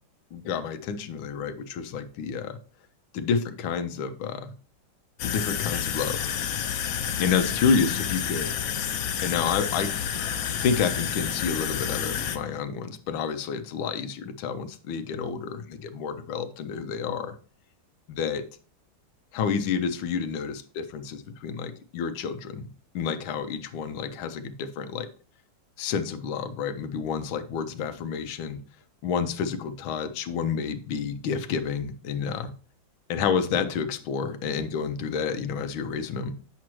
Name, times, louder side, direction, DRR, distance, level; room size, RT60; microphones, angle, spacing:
voice 1, 0.3-2.6 3.1-4.5 5.2-6.2 6.8-6.9 7.2-8.6 9.2-9.9 10.4-17.4 18.1-18.4 19.3-22.7 22.9-25.1 25.8-28.6 29.0-32.5 33.1-36.3, left 6 dB, 90° left, 10 dB, 1.5 m, -29 dB
sound 1, 5.2-12.4, left 8 dB, 70° left, 0.8 m, -29 dB
8.2 x 6.1 x 3.0 m, 0.40 s
omnidirectional pair, 2.1 m